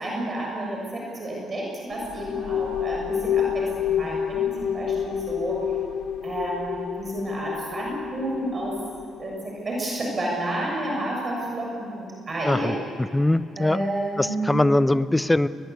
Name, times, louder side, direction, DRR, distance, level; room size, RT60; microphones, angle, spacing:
voice 1, 0.0-5.6 6.2-8.8 9.2-12.7 13.6-14.6, right 1 dB, 35° right, -2 dB, 6.7 m, -30 dB
sound 1, 1.9-9.5, left 9 dB, 80° left, 1.2 m, -29 dB
voice 2, 13.1-13.8 14.2-15.5, left 1 dB, 10° left, 14 dB, 0.7 m, -21 dB
22.5 x 21.0 x 8.3 m, 2.4 s
cardioid pair, 90°, 0 cm